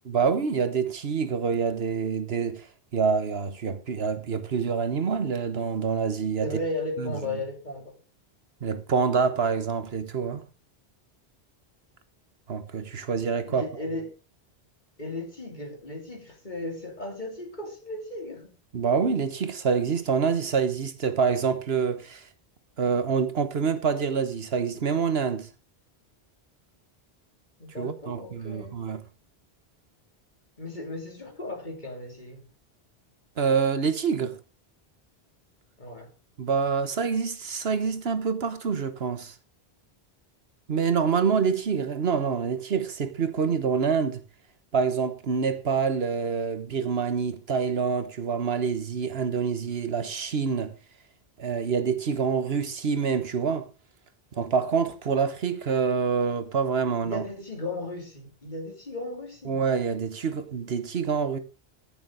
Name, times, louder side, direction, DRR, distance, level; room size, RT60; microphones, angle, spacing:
voice 1, 0.1-2.7 2.9-6.5 7.0-7.1 8.6-10.4 12.5-13.7 18.7-22.3 22.8-25.5 27.8-29.0 33.4-34.4 36.4-39.3 40.7-44.2 44.7-50.7 51.4-53.7 54.3-57.2 59.5-61.4, right 6 dB, 70° right, 1.4 m, -26 dB
voice 2, 6.4-8.0 13.5-14.1 15.0-18.5 27.6-28.7 30.6-32.5 35.8-36.1 57.0-59.6, left 2 dB, 45° left, 3.4 m, -36 dB
14.5 x 7.0 x 4.9 m
omnidirectional pair, 1.1 m